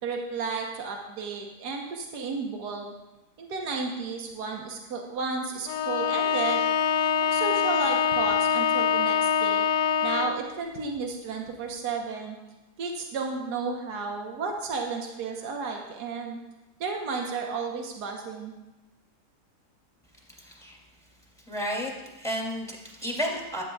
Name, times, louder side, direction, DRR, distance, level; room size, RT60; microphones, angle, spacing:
voice 1, 0.0-2.9 3.4-6.7 7.2-9.7 10.0-12.4 12.8-16.4 16.8-18.6, right 4 dB, 80° right, 1 dB, 1.6 m, -33 dB
Bowed string instrument, 5.7-10.5, left 7 dB, 80° left, 1.2 m, -24 dB
voice 2, 20.4-20.8 21.5-23.6, equal, ahead, -1 dB, 2.7 m, -32 dB
14.5 x 11.0 x 2.4 m, 1.0 s
omnidirectional pair, 1.7 m